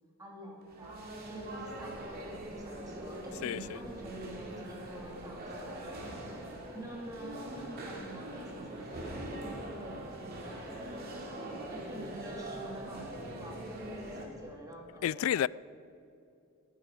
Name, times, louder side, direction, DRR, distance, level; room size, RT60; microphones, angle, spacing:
voice 1, 0.2-6.4 6.7-11.1 11.7-15.4, right 1 dB, 15° right, 2.7 m, -47 dB
sound 1, 0.6-14.2, right 1 dB, 45° right, 2.6 m, -42 dB
voice 2, 15.0-15.5, left 10 dB, 75° left, 0.3 m, -29 dB
19.5 x 11.0 x 4.9 m
head